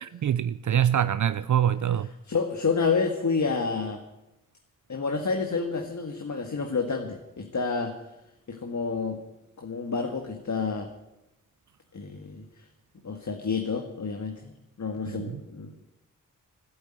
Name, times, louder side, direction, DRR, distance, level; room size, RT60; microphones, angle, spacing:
voice 1, 0.0-2.1 15.1-15.3, right 9 dB, 65° right, 0.6 m, -25 dB
voice 2, 2.3-4.0 4.9-7.9 8.5-9.2 9.6-10.9 11.9-12.5 13.0-14.5 14.8-15.8, left 4 dB, 60° left, 1.8 m, -29 dB
13.0 x 11.5 x 9.1 m
cardioid pair, 45°, 33 cm